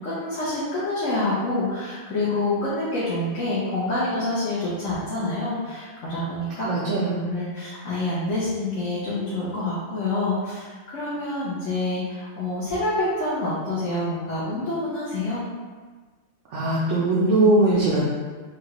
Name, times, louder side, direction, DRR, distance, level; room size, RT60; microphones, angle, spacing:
voice 1, 0.0-6.7 7.2-15.4, left 2 dB, 90° left, -9 dB, 1.2 m, -27 dB
voice 2, 6.6-7.3 16.5-18.0, right 2 dB, 80° right, -7 dB, 1.0 m, -20 dB
4.9 x 2.4 x 2.9 m, 1.4 s
omnidirectional pair, 1.3 m